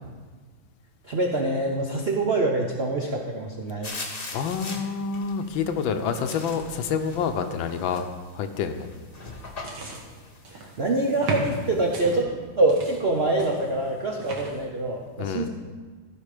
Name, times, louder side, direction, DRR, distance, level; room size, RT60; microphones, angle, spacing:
voice 1, 1.0-3.9 6.0-6.2 10.5-15.5, right 2 dB, 75° right, 1 dB, 0.5 m, -25 dB
sound 1, 3.8-12.2, left 3 dB, 35° left, 1.0 m, -41 dB
voice 2, 4.3-8.1 8.3-8.9 15.2-15.5, left 6 dB, 75° left, 8 dB, 1.3 m, -28 dB
sound 2, 9.3-10.8 11.2-12.2 12.7-14.6, right 2 dB, 55° right, 1.9 m, -36 dB
15.0 x 5.2 x 5.0 m, 1.4 s
omnidirectional pair, 2.3 m